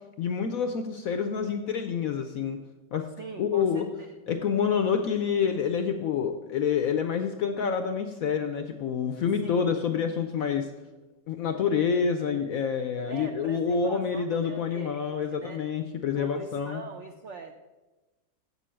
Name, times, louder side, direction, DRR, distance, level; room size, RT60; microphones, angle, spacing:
voice 1, 0.2-2.6 2.9-3.1 3.4-3.8 4.3-10.7 11.3-16.8, left 6 dB, 70° left, 7 dB, 0.8 m, -27 dB
voice 2, 3.2-4.2 4.9-5.1 9.4-9.7 13.1-15.6 16.2-17.5, right 4 dB, 75° right, 5 dB, 0.6 m, -42 dB
7.6 x 6.9 x 7.5 m, 1.1 s
omnidirectional pair, 2.0 m